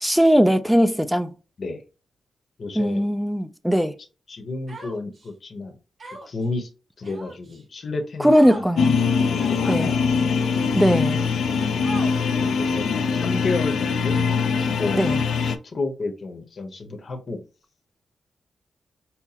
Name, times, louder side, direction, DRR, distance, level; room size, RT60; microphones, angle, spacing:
voice 1, 0.0-1.3 2.8-3.9 8.2-9.0 9.7-9.9 10.7-11.2 15.0-15.2, equal, ahead, 0.4 m, -19 dB
voice 2, 2.6-3.0 4.3-5.7 6.3-6.7 7.0-8.8 9.4-10.2 11.4-11.6 11.9-12.0 12.4-14.2 14.6-15.2 15.4-17.4, left 3 dB, 50° left, 0.9 m, -31 dB
Human voice, 4.7-5.3 6.0-6.4 7.0-7.6 8.3-8.7 9.3-9.8 10.5-10.6 11.8-12.4, right 2 dB, 45° right, 1.2 m, -38 dB
sound 1, 8.8-15.6, left 5 dB, 85° left, 0.4 m, -22 dB
5.6 x 2.0 x 2.8 m
cardioid pair, 100°, 0 cm